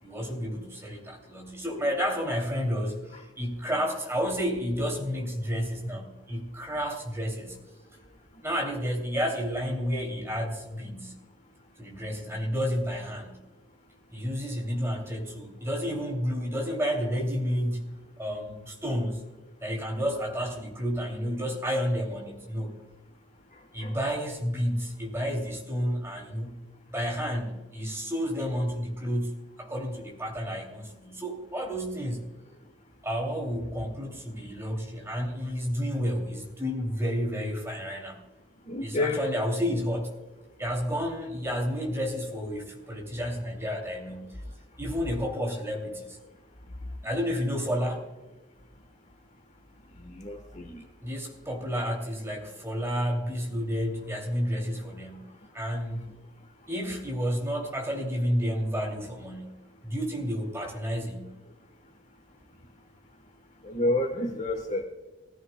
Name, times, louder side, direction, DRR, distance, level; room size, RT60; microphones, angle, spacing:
voice 1, 0.0-7.6 8.4-11.1 11.8-13.4 14.1-19.3 19.6-22.8 23.7-26.6 26.9-32.3 33.0-38.2 38.8-40.2 40.6-44.3 44.8-46.2 47.0-48.1 51.0-55.3 55.5-56.1 56.7-59.6 59.8-61.3, equal, 15° right, 1 dB, 2.7 m, -31 dB
voice 2, 38.7-39.2 50.2-50.7 63.7-64.8, left 2 dB, 40° left, 5 dB, 1.2 m, -28 dB
19.0 x 13.5 x 2.2 m, 1.2 s
head